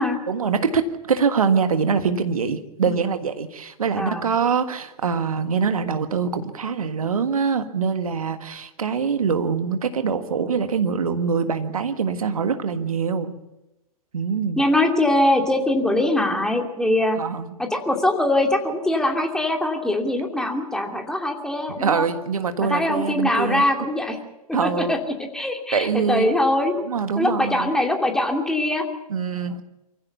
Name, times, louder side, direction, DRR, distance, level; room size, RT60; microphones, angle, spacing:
voice 1, 0.3-13.3 14.1-14.6 17.2-17.5 21.8-23.6 24.5-25.0 25.7-26.3 26.7-27.7 29.1-29.6, right 6 dB, 70° right, 9 dB, 1.7 m, -24 dB
voice 2, 3.9-4.3 14.6-17.2 17.6-22.1 22.6-24.2 24.6-26.7 27.2-28.8, left 1 dB, 5° left, 2 dB, 2.7 m, -22 dB
24.0 x 15.5 x 7.0 m, 0.97 s
figure-of-eight pair, 105°, 19 cm